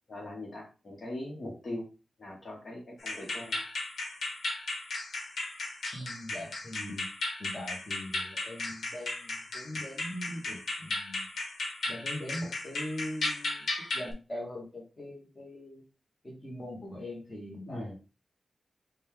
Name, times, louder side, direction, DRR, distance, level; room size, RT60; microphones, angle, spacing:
voice 1, 0.1-1.9 2.2-3.6 17.7-18.0, left 1 dB, 45° left, 0 dB, 1.2 m, -40 dB
sound 1, 3.0-14.1, left 2 dB, 80° left, 1.1 m, -36 dB
voice 2, 5.9-7.1 7.4-11.3 11.9-15.8 16.2-18.0, left 1 dB, 20° left, -2 dB, 1.2 m, -41 dB
5.2 x 2.3 x 3.6 m, 0.33 s
wide cardioid pair, 165°, 0 cm